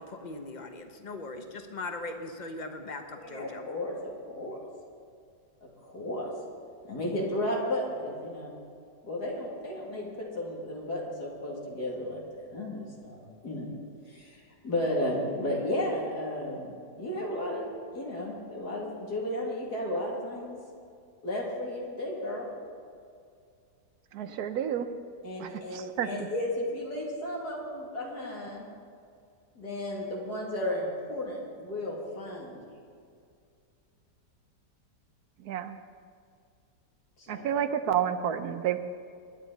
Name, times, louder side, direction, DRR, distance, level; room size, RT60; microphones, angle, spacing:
voice 1, 0.0-3.6, left 2 dB, 35° left, 6 dB, 0.8 m, -39 dB
voice 2, 3.2-4.6 5.6-6.3 6.8-8.5 9.0-13.7 14.1-20.6 21.2-22.5 25.2-28.6 29.5-32.7 37.2-37.5, left 1 dB, 65° left, -3 dB, 3.1 m, -34 dB
voice 3, 24.1-24.9 25.4-26.1 35.5-35.8 37.3-38.8, right 9 dB, 70° right, 10 dB, 1.1 m, -30 dB
21.5 x 10.0 x 4.0 m, 2.3 s
omnidirectional pair, 1.9 m